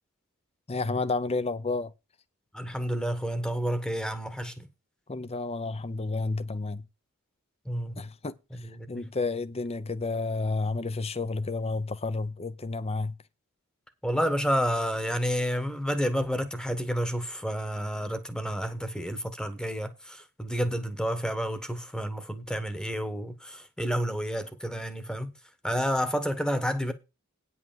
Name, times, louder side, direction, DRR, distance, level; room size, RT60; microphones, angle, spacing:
voice 1, 0.7-1.9 5.1-6.8 8.0-8.3 8.9-13.1, left 3 dB, 30° left, 0.7 m, -31 dB
voice 2, 2.5-4.7 7.6-8.0 8.6-9.0 14.0-25.3 25.6-26.9, equal, 5° left, 1.2 m, -30 dB
9.5 x 5.6 x 7.3 m
head